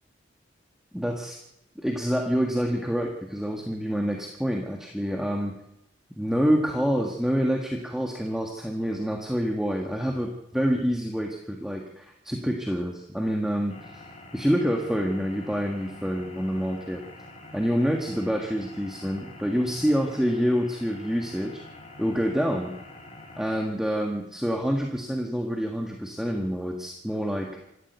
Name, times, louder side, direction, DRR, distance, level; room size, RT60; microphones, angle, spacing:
voice 1, 0.9-1.4 1.7-5.5 6.1-13.7 14.3-17.0 17.5-21.6 22.0-22.7 23.4-27.5, equal, 5° right, 1 dB, 1.6 m, -27 dB
sound 1, 13.7-23.7, left 2 dB, 35° left, 5.6 m, -46 dB
26.0 x 12.5 x 8.0 m, 0.88 s
head